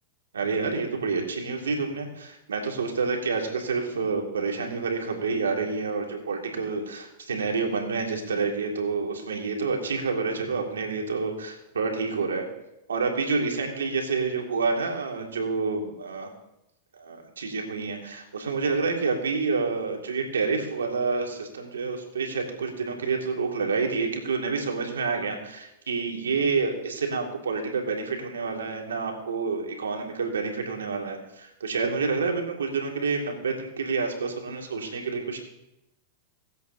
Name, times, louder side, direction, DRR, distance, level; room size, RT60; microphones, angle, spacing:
voice 1, 0.3-12.4 12.9-16.3 17.0-35.4, right 4 dB, 90° right, 2 dB, 2.1 m, -28 dB
23.0 x 8.0 x 2.7 m, 0.86 s
hypercardioid pair, 110°, 0 cm